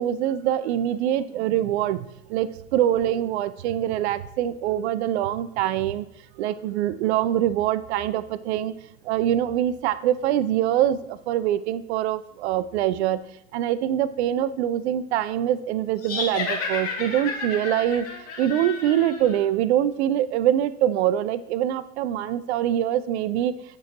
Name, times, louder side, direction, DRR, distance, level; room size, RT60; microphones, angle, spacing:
voice 1, 0.0-6.1 6.4-8.7 9.0-13.2 13.5-18.1 18.4-23.5, right 11 dB, 50° right, 16 dB, 0.5 m, -24 dB
sound 1, 16.0-19.4, left 4 dB, 35° left, 2.4 m, -31 dB
10.0 x 6.0 x 2.9 m, 0.79 s
figure-of-eight pair, 80°, 42 cm